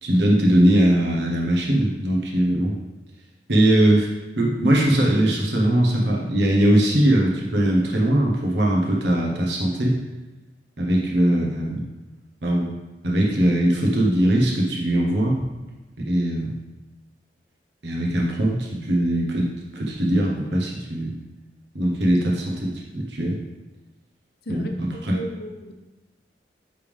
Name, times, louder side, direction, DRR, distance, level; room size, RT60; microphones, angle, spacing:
voice 1, 0.0-2.8 3.5-4.1 4.4-10.0 10.8-11.8 12.4-12.7 13.0-15.4 16.1-16.5 17.8-21.1 21.7-23.4 24.5-25.2, right 1 dB, 70° right, -1 dB, 1.1 m, -20 dB
voice 2, 24.5-25.7, equal, 60° left, 4 dB, 0.9 m, -34 dB
10.0 x 3.5 x 3.5 m, 1.1 s
head